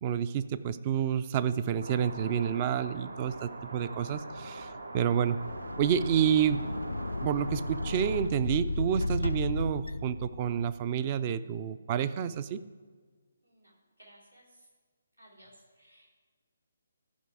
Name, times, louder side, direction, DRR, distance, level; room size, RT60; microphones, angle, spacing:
voice 1, 0.0-5.4 5.8-6.7 7.2-12.6, right 8 dB, 30° right, 14 dB, 0.4 m, -29 dB
sound 1, 1.8-8.2, right 2 dB, 70° right, 0.9 m, -43 dB
sound 2, 5.2-10.8, left 2 dB, 75° left, 0.3 m, -34 dB
voice 2, 13.4-14.7 15.2-16.1, right 1 dB, 90° right, -4 dB, 3.2 m, -59 dB
14.0 x 5.2 x 4.7 m, 1.5 s
figure-of-eight pair, 140°, 0 cm